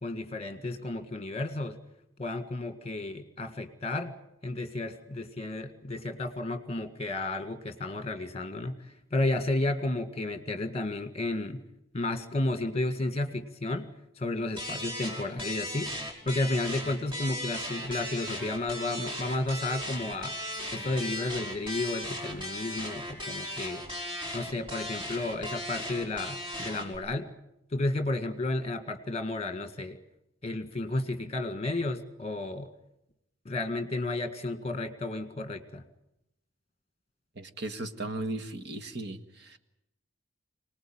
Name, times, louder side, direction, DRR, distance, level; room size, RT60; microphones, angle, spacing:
voice 1, 0.0-1.8 2.2-4.2 4.4-11.6 11.9-16.0 16.3-20.3 20.7-23.8 24.3-27.3 27.7-30.0 30.4-32.7 33.5-35.8, left 2 dB, 30° left, 9 dB, 1.9 m, -32 dB
sound 1, 14.6-27.0, left 1 dB, 25° right, 5.5 m, -37 dB
voice 2, 37.3-39.6, right 2 dB, 55° right, 9 dB, 1.6 m, -36 dB
25.5 x 19.5 x 8.9 m, 0.85 s
head